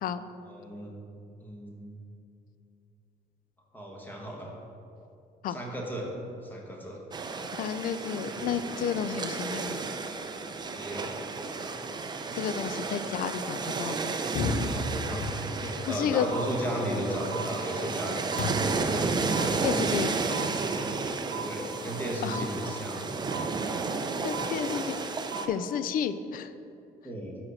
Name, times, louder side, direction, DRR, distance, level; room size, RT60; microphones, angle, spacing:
voice 1, 0.5-1.0 1.4-2.0 3.7-4.5 5.5-6.1 6.4-7.0 10.7-11.1 14.7-15.3 15.6-19.0 21.3-23.5 27.0-27.4, right 1 dB, 10° left, -2 dB, 1.3 m, -35 dB
sound 1, 7.1-25.5, right 4 dB, 25° right, 0.5 m, -32 dB
voice 2, 7.6-9.8 12.3-14.1 15.9-16.3 19.6-20.1 22.2-22.4 24.2-24.9 25.5-26.5, left 8 dB, 55° left, 13 dB, 0.4 m, -31 dB
sound 2, 14.4-15.8 18.4-19.0, left 2 dB, 75° left, 0.8 m, -31 dB
sound 3, 16.3-16.4 17.3-17.4 18.3-18.4 19.3-19.4 20.3-20.4 21.3-21.4 22.3-22.4 23.3-23.4 24.3-24.4 25.3-25.4, right 9 dB, 75° right, 1.0 m, -36 dB
5.7 x 4.8 x 6.4 m, 2.6 s
cardioid pair, 110°, 17 cm